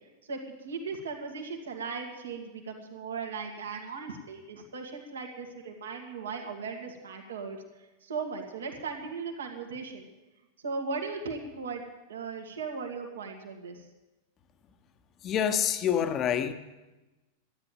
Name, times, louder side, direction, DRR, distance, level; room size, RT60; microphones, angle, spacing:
voice 1, 0.3-7.6 8.0-10.1 10.6-11.8 12.1-13.8, right 4 dB, 65° right, 2 dB, 2.0 m, -37 dB
voice 2, 15.2-16.6, left 9 dB, 30° left, 10 dB, 1.1 m, -27 dB
13.0 x 10.5 x 9.3 m, 1.1 s
figure-of-eight pair, 90°, 0 cm